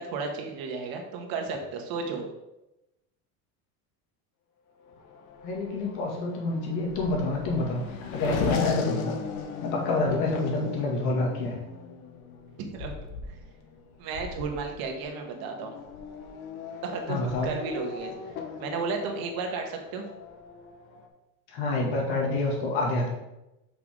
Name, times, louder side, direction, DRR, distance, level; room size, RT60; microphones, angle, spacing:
voice 1, 0.0-2.3 12.7-12.9 14.0-15.7 16.8-18.1 18.6-20.0, right 4 dB, 60° right, 3 dB, 1.5 m, -33 dB
Race car auto racing / Accelerating revving vroom, 4.9-21.1, left 5 dB, 85° left, 1.2 m, -37 dB
voice 2, 5.4-7.8 8.1-9.1 9.6-11.6 17.1-17.5 21.5-23.1, left 2 dB, 65° left, -1 dB, 2.3 m, -27 dB
7.0 x 5.9 x 3.7 m, 0.94 s
supercardioid pair, 130°, 41 cm